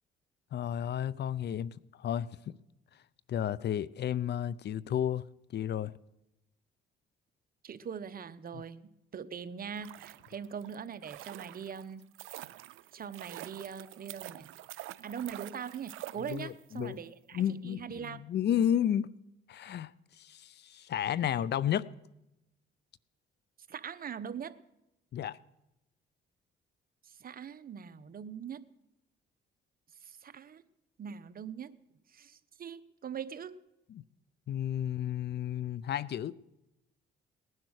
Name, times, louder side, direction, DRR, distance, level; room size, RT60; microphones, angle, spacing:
voice 1, 0.5-2.6 3.3-5.2 5.5-5.9 16.3-17.0 17.3-19.1 19.5-19.9 20.2-21.9 25.1-25.4 33.9-34.0 34.5-36.4, left 10 dB, 60° left, 0.6 m, -32 dB
voice 2, 7.6-12.0 12.9-14.5 15.0-18.2 23.7-24.6 27.0-28.7 30.0-30.6 31.0-31.8 32.1-33.6, right 7 dB, 50° right, 0.9 m, -42 dB
sound 1, 9.6-16.8 17.1-17.2, right 16 dB, 85° right, 0.5 m, -47 dB
19.0 x 11.0 x 6.4 m
cardioid pair, 90°, 20 cm